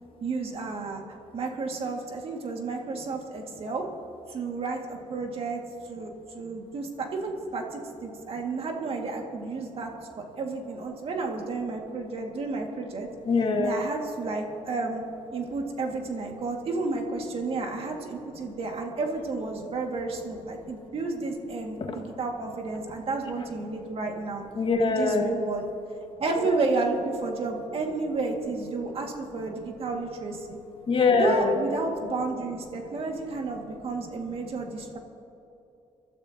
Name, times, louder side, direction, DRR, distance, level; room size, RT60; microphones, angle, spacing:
voice 1, 0.2-1.0 1.3-3.9 4.3-5.6 5.9-13.1 13.6-15.0 15.3-24.4 24.8-25.6 26.2-30.6 31.2-35.0, right 3 dB, 55° right, 2 dB, 2.1 m, -31 dB
voice 2, 13.3-13.9 24.6-25.4 26.4-26.6 30.9-31.6, left 4 dB, 50° left, 3 dB, 1.7 m, -23 dB
23.0 x 12.5 x 2.9 m, 2.9 s
cardioid pair, 90°, 12 cm